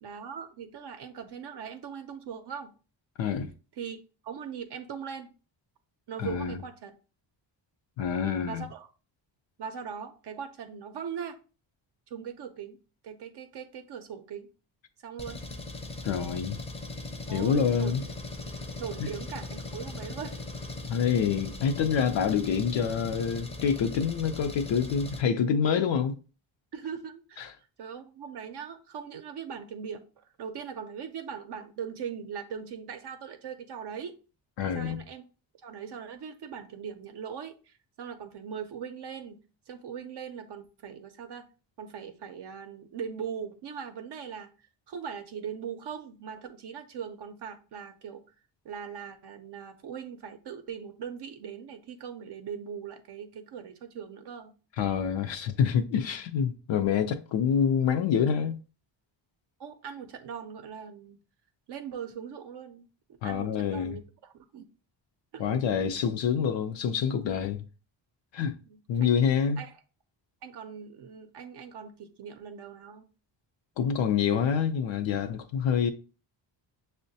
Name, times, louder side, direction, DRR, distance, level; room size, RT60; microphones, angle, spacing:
voice 1, 0.0-2.7 3.8-4.0 4.2-5.3 6.1-6.9 8.4-8.9 9.6-11.4 12.1-12.8 13.0-14.5 15.0-15.4 17.3-17.9 18.8-20.4 26.7-27.5 27.8-34.1 34.6-35.2 35.6-41.5 41.8-44.5 44.9-48.2 48.6-54.5 59.6-61.2 61.7-62.9 63.2-64.6 65.3-65.6 68.7-69.1 69.6-69.7 70.4-73.1, right 7 dB, 60° right, 0.5 m, -40 dB
voice 2, 3.2-3.5 6.2-6.6 8.0-8.6 16.0-16.6 17.3-18.0 19.0-19.1 20.9-26.2 27.4-27.5 34.6-35.0 54.8-58.6 63.2-64.0 65.4-67.6 68.3-68.5 68.9-69.6 73.8-75.9, left 7 dB, 70° left, 0.5 m, -27 dB
Engine, 15.2-25.2, left 2 dB, 15° left, 0.5 m, -39 dB
6.3 x 2.1 x 2.6 m
cardioid pair, 120°, 47 cm